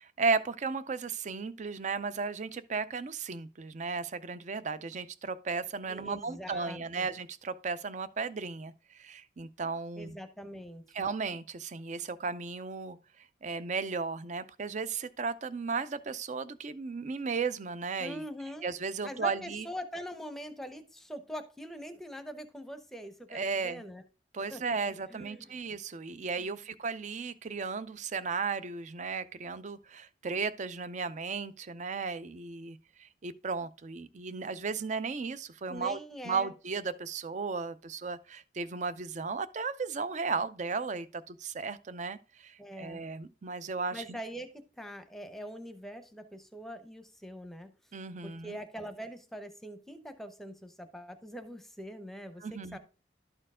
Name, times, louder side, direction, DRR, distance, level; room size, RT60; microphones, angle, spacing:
voice 1, 0.2-10.2 10.9-13.0 13.4-18.2 18.6-19.7 23.3-23.8 24.3-36.0 36.2-44.2 47.9-48.6 52.4-52.8, right 4 dB, 40° right, 0.5 m, -35 dB
voice 2, 5.9-7.1 10.0-11.0 18.0-18.7 19.0-24.0 24.5-25.6 26.4-26.7 35.7-36.5 42.6-43.0 43.9-47.7 48.2-52.8, equal, ahead, 0.8 m, -43 dB
12.0 x 4.5 x 3.6 m
head